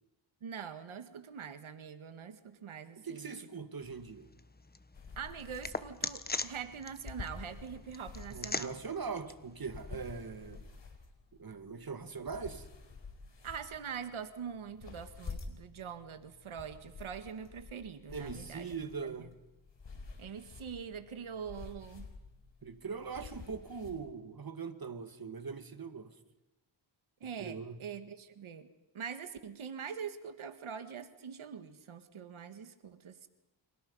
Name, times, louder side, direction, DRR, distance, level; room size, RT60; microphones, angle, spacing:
voice 1, 0.4-3.3 5.2-8.8 13.4-18.7 19.0-19.3 20.2-22.1 27.2-28.7 28.9-33.3, right 7 dB, 90° right, 2.0 m, -44 dB
voice 2, 3.0-4.3 8.3-10.7 11.4-12.7 18.1-19.3 22.6-26.1 27.4-27.8, right 5 dB, 45° right, 2.2 m, -41 dB
sound 1, 3.8-10.6, left 3 dB, 20° left, 1.3 m, -43 dB
sound 2, 4.9-24.0, left 4 dB, 65° left, 4.7 m, -50 dB
29.5 x 26.5 x 5.6 m
cardioid pair, 80°, 48 cm